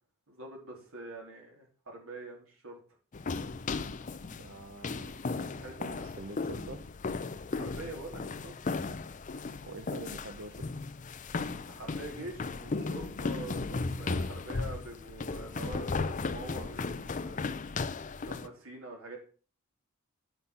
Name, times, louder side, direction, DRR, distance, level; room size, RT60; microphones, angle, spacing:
voice 1, 0.3-2.8 5.4-6.1 7.6-8.6 11.7-17.4 18.2-19.2, right 1 dB, 80° right, 0 dB, 3.3 m, -45 dB
sound 1, 3.1-18.5, left 3 dB, 35° left, 0.5 m, -36 dB
voice 2, 4.3-5.2 5.8-6.8 9.7-10.7, right 3 dB, 60° right, 7 dB, 0.8 m, -45 dB
8.3 x 5.7 x 5.6 m, 0.40 s
head